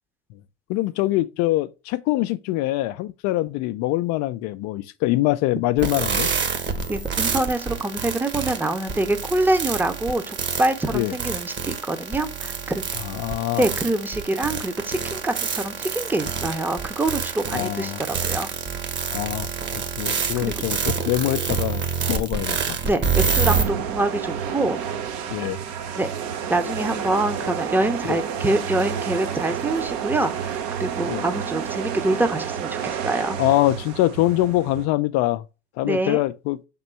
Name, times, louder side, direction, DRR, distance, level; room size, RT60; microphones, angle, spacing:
voice 1, 0.7-6.3 10.9-11.1 13.0-13.7 17.5-18.0 19.1-22.8 25.3-25.6 28.0-28.2 31.1-31.2 33.4-35.4 35.8-36.6, left 16 dB, 55° left, 0.5 m, -24 dB
sound 1, 5.8-23.6, right 5 dB, 35° right, 1.3 m, -27 dB
voice 2, 6.9-12.8 13.5-18.5 20.4-20.5 22.8-24.8 26.0-26.1 26.5-33.4 35.8-36.2, right 2 dB, 5° right, 0.8 m, -25 dB
sound 2, 23.5-34.9, right 8 dB, 55° right, 1.0 m, -30 dB
5.9 x 3.7 x 4.4 m
hypercardioid pair, 80°, 31 cm